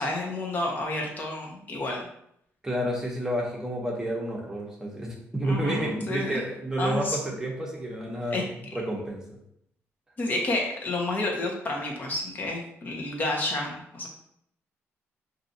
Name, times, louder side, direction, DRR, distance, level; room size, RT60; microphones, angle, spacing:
voice 1, 0.0-2.1 5.4-6.4 6.8-7.2 8.3-8.4 10.2-14.1, left 2 dB, 40° left, 0 dB, 1.1 m, -30 dB
voice 2, 2.6-8.5 8.7-9.4, right 1 dB, 10° right, -2 dB, 1.0 m, -30 dB
5.7 x 2.7 x 2.7 m, 0.72 s
cardioid pair, 115°, 5 cm